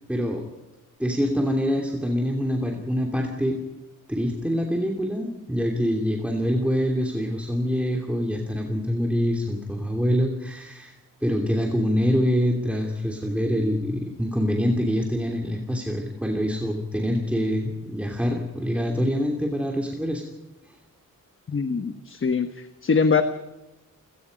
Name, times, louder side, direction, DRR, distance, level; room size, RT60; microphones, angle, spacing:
voice 1, 0.1-0.5 1.0-3.6 4.1-10.9 11.2-20.2, equal, 5° right, 1 dB, 2.7 m, -25 dB
voice 2, 21.5-22.5 22.8-23.2, left 5 dB, 40° left, 9 dB, 1.2 m, -22 dB
29.5 x 18.0 x 5.3 m, 1.1 s
wide cardioid pair, 135°, 33 cm